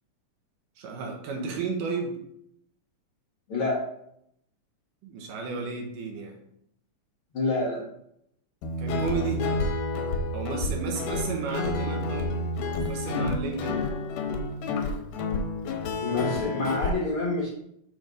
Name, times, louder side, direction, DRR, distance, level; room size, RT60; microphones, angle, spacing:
voice 1, 0.8-2.2 5.0-6.4 8.8-9.5 10.3-12.4 12.9-13.8, right 4 dB, 75° right, 2 dB, 2.7 m, -32 dB
voice 2, 3.5-3.8 7.3-7.8 16.0-17.5, left 3 dB, 50° left, -5 dB, 1.8 m, -27 dB
Guitar, 8.6-16.9, left 2 dB, 75° left, 2.3 m, -29 dB
6.4 x 4.0 x 5.3 m, 0.73 s
omnidirectional pair, 4.0 m